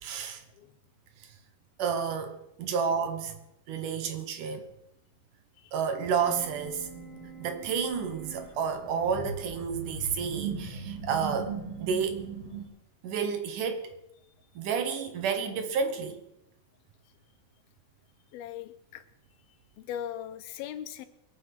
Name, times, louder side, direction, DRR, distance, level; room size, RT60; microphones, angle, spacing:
voice 1, 0.0-0.4 1.8-3.4 3.7-4.7 5.7-6.9 7.4-12.2 13.0-14.0 14.6-16.2, right 6 dB, 65° right, 2.6 m, -30 dB
sound 1, 6.2-12.7, right 4 dB, 85° right, 5.4 m, -39 dB
voice 2, 18.3-19.0 19.8-21.1, left 10 dB, 85° left, 2.8 m, -39 dB
22.5 x 9.1 x 5.9 m
omnidirectional pair, 4.2 m